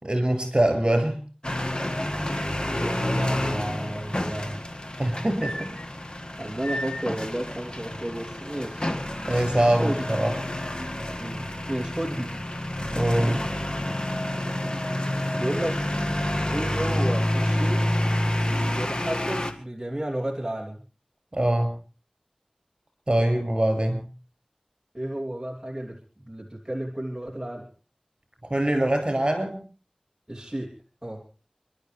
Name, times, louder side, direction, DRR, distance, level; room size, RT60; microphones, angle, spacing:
voice 1, 0.0-1.2 2.2-2.4 5.0-5.7 9.3-10.3 12.9-13.4 21.3-21.7 23.1-24.1 28.4-29.6, right 1 dB, 45° right, 6 dB, 6.3 m, -23 dB
sound 1, 1.4-19.5, left 1 dB, 45° left, 1.9 m, -28 dB
voice 2, 2.6-4.6 6.4-8.9 9.8-9.9 11.2-12.3 15.3-15.9 16.5-17.8 18.5-20.8 24.9-27.7 30.3-30.7 31.0-31.2, right 1 dB, 20° right, -2 dB, 3.2 m, -32 dB
29.5 x 12.5 x 3.4 m, 0.35 s
wide cardioid pair, 40°, 2 cm